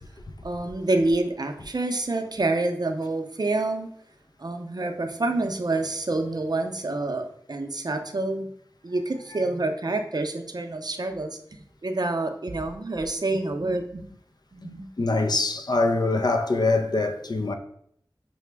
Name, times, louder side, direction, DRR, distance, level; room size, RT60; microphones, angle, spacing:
voice 1, 0.4-3.9 4.4-8.5 8.8-11.4 11.8-14.1 14.5-14.9, right 2 dB, 55° right, 0.5 m, -27 dB
voice 2, 14.6-17.5, left 3 dB, 55° left, 0.4 m, -24 dB
5.8 x 2.1 x 3.3 m
wide cardioid pair, 50°, 8 cm